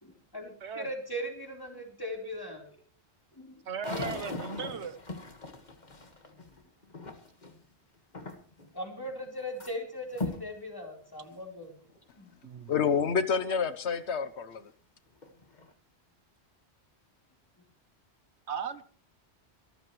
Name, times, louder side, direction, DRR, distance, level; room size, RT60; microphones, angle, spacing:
voice 1, 0.0-2.7 3.4-3.5 8.7-11.7 12.2-12.3, equal, 20° left, 4.2 m, -39 dB
voice 2, 0.6-0.9 3.7-5.0 12.4-12.7 18.5-18.9, right 6 dB, 80° right, 1.4 m, -37 dB
sound 1, 3.8-7.6 8.1-8.7 9.1-9.7 10.1-10.5 11.2-11.3 12.0-12.1 14.5-14.6 15.1-15.7, left 2 dB, 40° left, 1.9 m, -39 dB
voice 3, 12.7-14.7, left 6 dB, 75° left, 1.2 m, -28 dB
24.5 x 14.0 x 3.2 m
omnidirectional pair, 1.1 m